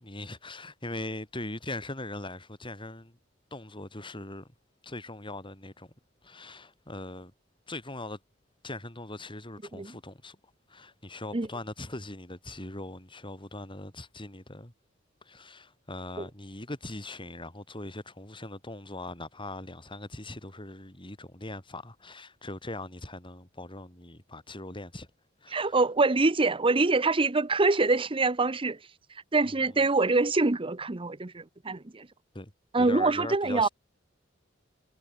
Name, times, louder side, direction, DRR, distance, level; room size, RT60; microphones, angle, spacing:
voice 1, 0.0-3.2 3.5-4.5 4.8-5.9 6.2-7.3 7.7-8.2 8.6-10.4 10.7-14.7 15.2-25.1 25.4-25.8 29.4-29.8 32.3-32.5 32.8-33.7, left 2 dB, 25° left, 5.0 m, -40 dB
voice 2, 25.5-28.8 29.3-32.1 32.7-33.7, right 3 dB, 25° right, 0.9 m, -25 dB
head